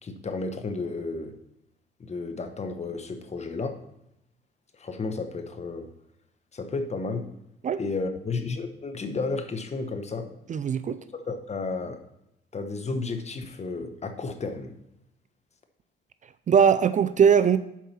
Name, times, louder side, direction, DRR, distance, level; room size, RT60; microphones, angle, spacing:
voice 1, 0.0-1.4 2.0-3.8 4.8-5.9 6.5-7.3 7.8-10.3 11.1-12.0 12.5-14.7, left 3 dB, 35° left, 7 dB, 1.1 m, -32 dB
voice 2, 10.5-11.0 16.5-17.6, right 7 dB, 40° right, 13 dB, 0.4 m, -20 dB
7.3 x 4.8 x 5.7 m, 0.84 s
cardioid pair, 90°, 20 cm